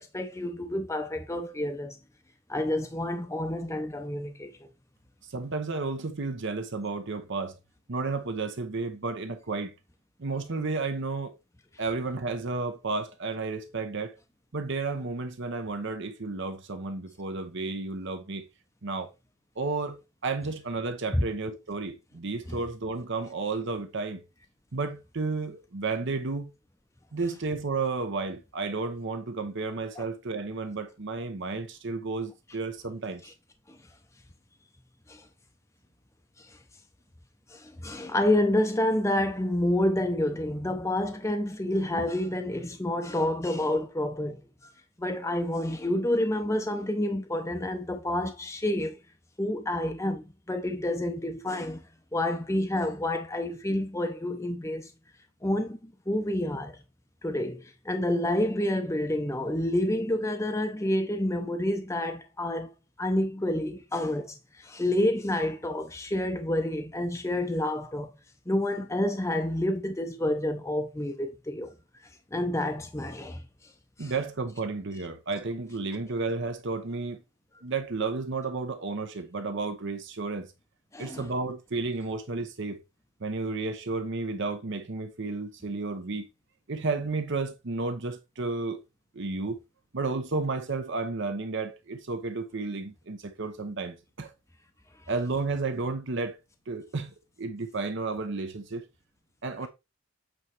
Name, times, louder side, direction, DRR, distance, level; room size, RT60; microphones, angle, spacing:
voice 1, 0.0-2.0 2.5-4.5 21.1-21.2 22.5-22.6 30.0-30.1 33.7-33.8 35.1-35.3 36.4-36.5 37.5-44.7 45.0-49.0 49.4-51.8 52.1-54.9 55.4-56.8 57.2-62.7 63.0-68.1 68.5-71.7 72.3-73.4 74.0-74.1 80.9-81.2, left 1 dB, 15° left, 0.6 m, -29 dB
voice 2, 5.3-7.5 7.9-9.7 10.2-11.3 11.8-14.1 14.5-18.4 18.8-19.1 19.6-24.2 24.7-26.5 27.1-33.2 74.0-77.2 77.6-80.5 81.0-82.8 83.2-86.3 86.7-88.8 89.1-89.6 89.9-94.3 95.1-96.4 96.7-97.1 97.4-98.9 99.4-99.7, right 3 dB, 55° right, 0.8 m, -32 dB
8.2 x 3.1 x 4.7 m
head